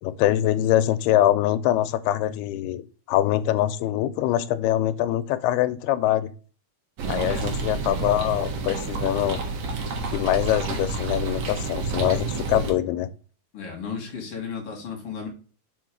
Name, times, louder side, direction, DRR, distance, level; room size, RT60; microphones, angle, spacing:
voice 1, 0.0-6.3 7.1-9.4 10.1-13.1, left 13 dB, 85° left, 13 dB, 2.4 m, -23 dB
sound 1, 7.0-12.7, right 4 dB, 65° right, 1.8 m, -29 dB
voice 2, 7.2-7.5 13.5-15.3, left 6 dB, 50° left, 1 dB, 2.0 m, -34 dB
5.8 x 4.6 x 4.8 m, 0.38 s
omnidirectional pair, 4.6 m